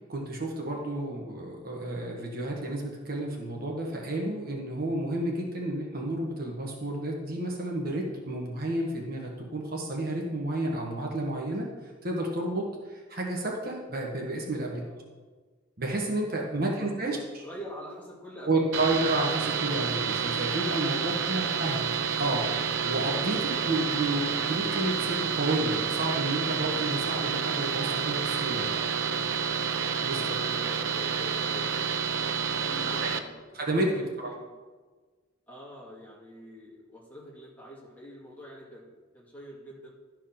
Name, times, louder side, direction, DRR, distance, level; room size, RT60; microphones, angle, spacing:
voice 1, 0.1-14.8 15.8-17.2 18.5-21.9 22.2-22.5 22.8-28.7 30.0-30.3 33.0-33.1 33.5-34.3, right 2 dB, 50° right, -1 dB, 1.4 m, -31 dB
voice 2, 14.6-15.2 16.6-18.9 28.7-29.2 29.9-33.6 33.9-34.5 35.5-39.9, equal, 10° left, -5 dB, 2.3 m, -46 dB
sound 1, 18.7-33.2, right 6 dB, 70° right, 0.7 m, -29 dB
12.5 x 4.6 x 5.9 m, 1.4 s
head